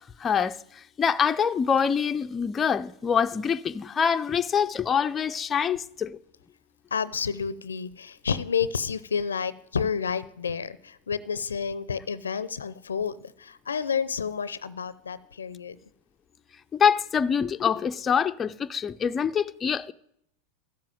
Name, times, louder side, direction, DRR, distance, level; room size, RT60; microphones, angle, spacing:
voice 1, 0.2-0.6 1.0-6.1 16.7-19.9, left 7 dB, 25° left, 0.5 m, -25 dB
voice 2, 6.9-15.8, left 6 dB, 90° left, 0.5 m, -30 dB
13.0 x 7.5 x 9.3 m
hypercardioid pair, 95°, 0 cm